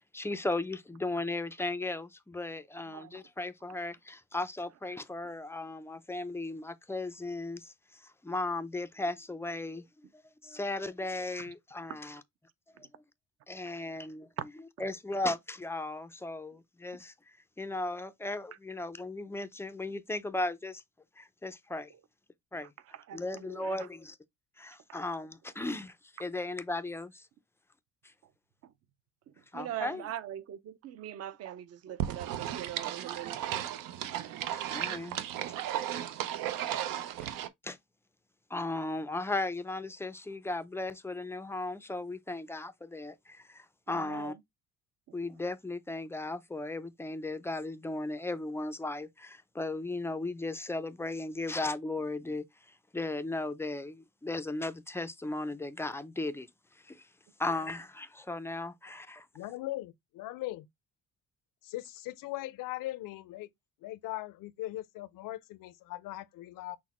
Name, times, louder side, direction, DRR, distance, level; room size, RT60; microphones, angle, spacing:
voice 1, 0.1-9.8 10.1-12.2 12.7-13.0 13.5-14.3 14.8-17.1 17.6-20.8 21.2-21.9 22.5-22.7 23.1-24.2 24.6-27.3 29.5-30.0 34.5-35.2 37.0-37.3 37.6-37.8 38.5-44.3 45.1-52.4 52.9-56.5 56.8-57.1 57.4-59.3, left 2 dB, 10° left, 0.3 m, -36 dB
voice 2, 2.9-3.2 14.4-14.5 14.8-14.9 22.9-23.9 24.9-25.0 28.6-28.7 29.5-33.7 43.9-44.4 57.5-57.6, right 11 dB, 50° right, 0.6 m, -42 dB
sound 1, 32.0-37.5, right 11 dB, 85° right, 0.6 m, -35 dB
voice 3, 59.3-60.7 61.6-63.5 63.8-66.8, left 16 dB, 85° left, 0.6 m, -39 dB
6.2 x 2.1 x 4.1 m
cardioid pair, 140°, 32 cm